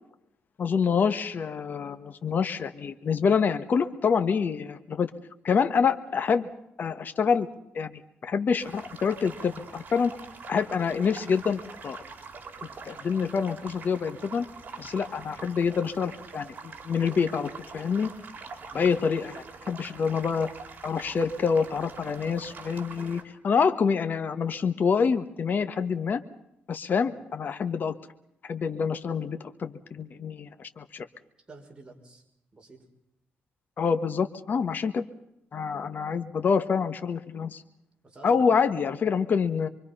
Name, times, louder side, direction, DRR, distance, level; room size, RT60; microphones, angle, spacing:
voice 1, 0.6-5.1 5.4-6.5 6.8-7.5 7.7-10.1 10.5-12.0 12.8-14.4 14.8-18.1 18.7-20.5 20.8-26.2 26.7-27.9 28.5-31.1 33.8-35.0 35.5-37.6 38.2-39.7, left 6 dB, 50° left, 9 dB, 1.5 m, -26 dB
sound 1, 8.6-23.2, right 4 dB, 45° right, 4.6 m, -44 dB
voice 2, 18.7-19.0 31.5-32.2 32.5-32.8 38.0-38.7, right 2 dB, 25° right, 1 dB, 6.1 m, -48 dB
25.5 x 24.0 x 5.6 m, 0.80 s
cardioid pair, 100°, 4 cm